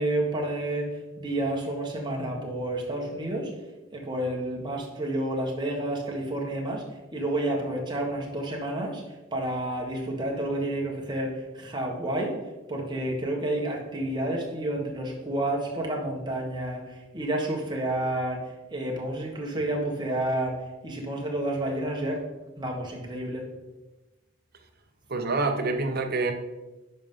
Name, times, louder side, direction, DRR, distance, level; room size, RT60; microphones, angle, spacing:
voice 1, 0.0-3.5 3.9-12.4 12.7-22.3 22.6-23.5, right 1 dB, 25° right, -1 dB, 1.4 m, -30 dB
voice 2, 25.1-26.3, right 3 dB, 55° right, 6 dB, 0.9 m, -26 dB
10.0 x 5.5 x 3.8 m, 1.1 s
head